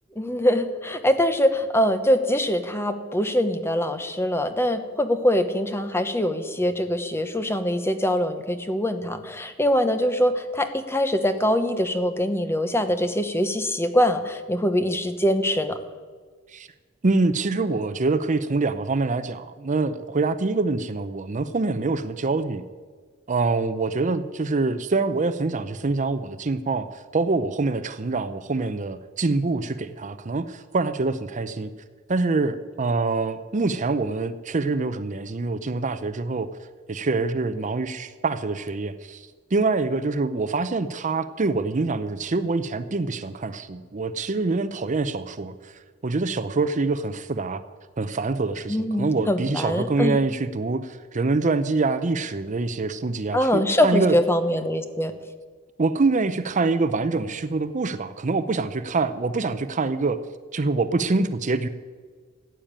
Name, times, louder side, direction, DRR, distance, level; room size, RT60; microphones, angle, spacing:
voice 1, 0.2-15.8 48.7-50.2 53.3-55.1, equal, 10° left, 9 dB, 1.0 m, -23 dB
voice 2, 17.0-22.6 23.3-31.7 32.1-36.5 36.9-45.7 46.0-47.6 48.0-54.1 55.8-60.2 60.5-61.7, right 3 dB, 35° right, 12 dB, 0.6 m, -25 dB
15.0 x 8.9 x 8.8 m, 1.5 s
head